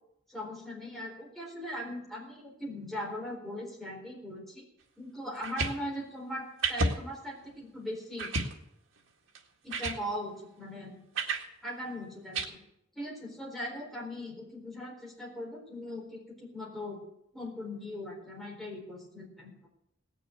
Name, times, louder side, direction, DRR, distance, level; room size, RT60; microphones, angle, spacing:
voice 1, 0.3-4.6 5.0-8.3 9.6-11.0 11.6-12.6 12.9-17.0 17.3-19.7, left 1 dB, ahead, -3 dB, 4.0 m, -40 dB
sound 1, 5.4-5.8 6.6-7.0 7.5-7.6 8.2-8.5 9.3-9.4 9.7-10.0 11.1-11.5 12.3-12.4, right 3 dB, 90° right, 1.9 m, -30 dB
18.0 x 6.9 x 9.1 m, 0.79 s
head